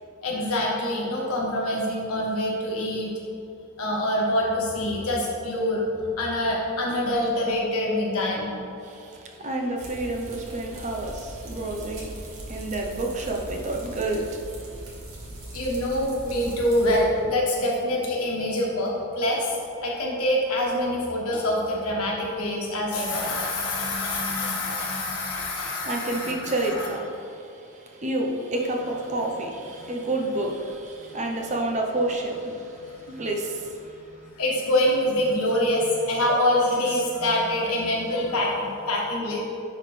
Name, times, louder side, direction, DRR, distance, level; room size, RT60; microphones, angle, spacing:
voice 1, 0.2-3.1 3.8-5.8 6.2-8.5 15.5-26.9 29.8-29.9 32.6-33.0 34.2-39.4, left 1 dB, 85° left, -3 dB, 1.4 m, -25 dB
voice 2, 8.8-12.1 12.5-14.3 25.8-27.4 27.9-32.7 33.1-33.7, right 2 dB, 30° right, 0 dB, 0.7 m, -29 dB
sound 1, 9.8-17.0, right 1 dB, 60° right, 1.4 m, -40 dB
10.0 x 4.0 x 3.3 m, 2.8 s
head